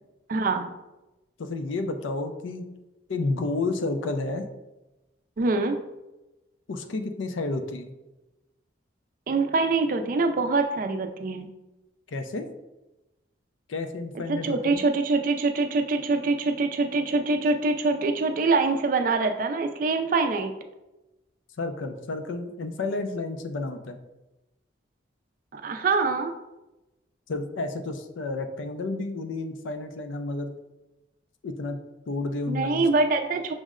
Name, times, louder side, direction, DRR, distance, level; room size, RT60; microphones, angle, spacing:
voice 1, 0.3-0.7 5.4-5.8 9.3-11.5 14.3-20.5 25.5-26.3 32.5-33.5, right 3 dB, 45° right, 7 dB, 0.3 m, -24 dB
voice 2, 1.4-2.7 3.1-4.5 6.7-7.9 12.1-12.5 13.7-14.8 21.6-24.0 27.3-30.5 31.4-31.8 32.1-32.8, left 2 dB, 85° left, 7 dB, 0.5 m, -31 dB
6.2 x 2.1 x 3.6 m, 1.0 s
head